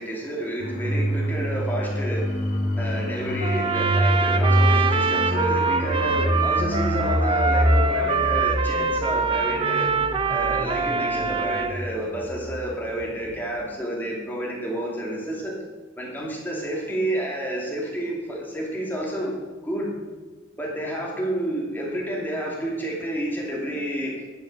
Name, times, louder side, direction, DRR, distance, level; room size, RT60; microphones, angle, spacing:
voice 1, 0.0-2.2 2.8-9.9 10.3-15.5 16.0-19.3 19.6-19.9 20.6-24.1, right 1 dB, 10° left, -3 dB, 2.6 m, -30 dB
sound 1, 0.6-13.0 13.3-13.4, equal, 40° left, 2.0 m, -26 dB
Trumpet, 3.4-11.8, right 4 dB, 25° right, 0.6 m, -24 dB
11.0 x 7.3 x 6.2 m, 1.3 s
head